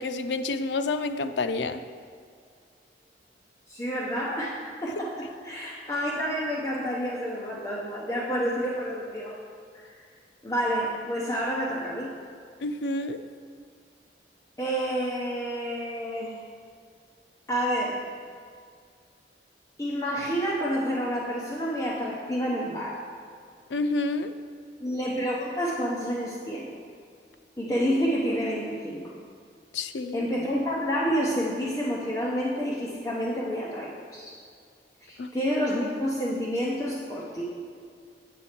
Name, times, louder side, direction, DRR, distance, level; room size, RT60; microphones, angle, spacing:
voice 1, 0.0-1.8 12.6-13.2 23.7-24.3 29.7-30.3 35.2-35.3, left 3 dB, 85° left, 9 dB, 0.5 m, -29 dB
voice 2, 3.7-9.4 9.7-10.0 10.4-12.1 14.6-16.3 17.5-18.0 19.8-23.0 24.8-26.7 27.6-29.0 30.1-34.4 35.0-37.4, equal, 20° left, -5 dB, 0.8 m, -29 dB
8.0 x 7.7 x 4.4 m, 2.2 s
head